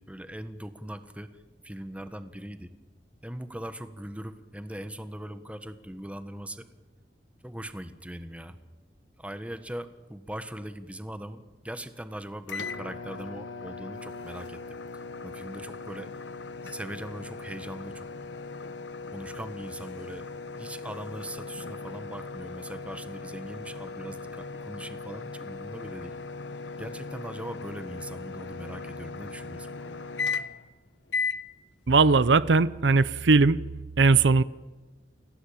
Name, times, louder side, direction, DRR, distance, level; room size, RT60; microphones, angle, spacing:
voice 1, 0.0-2.7 3.2-6.7 7.4-8.5 9.2-14.8 15.2-16.1 16.6-18.1 19.1-20.3 20.6-26.1 26.8-30.1, right 1 dB, 10° right, 10 dB, 1.4 m, -40 dB
sound 1, 12.5-30.7 31.1-31.4, left 4 dB, 80° left, 1.2 m, -38 dB
voice 2, 31.9-33.6 34.0-34.4, right 4 dB, 75° right, 17 dB, 0.7 m, -19 dB
28.5 x 17.5 x 8.7 m, 1.3 s
head